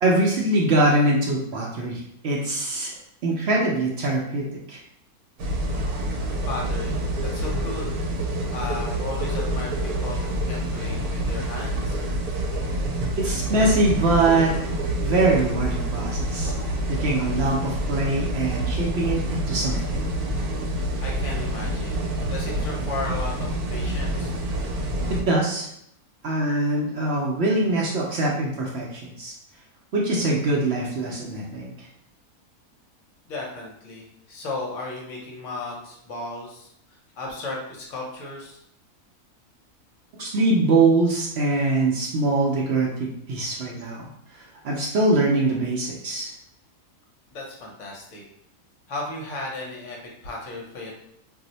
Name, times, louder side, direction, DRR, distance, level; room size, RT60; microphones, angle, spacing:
voice 1, 0.0-2.9 3.2-4.8 13.2-14.5 15.0-16.5 16.9-20.0 25.3-25.7 26.2-29.3 29.9-31.7 40.2-46.3, right 2 dB, 60° right, -2 dB, 0.7 m, -23 dB
sound 1, 5.4-25.2, right 1 dB, 85° right, 1.1 m, -27 dB
voice 2, 6.5-7.9 8.5-12.0 16.3-16.8 18.9-19.0 21.0-22.0 22.3-24.3 33.3-38.6 47.3-48.2 48.9-50.9, left 2 dB, 60° left, -2 dB, 1.0 m, -35 dB
2.6 x 2.0 x 3.9 m, 0.74 s
omnidirectional pair, 1.6 m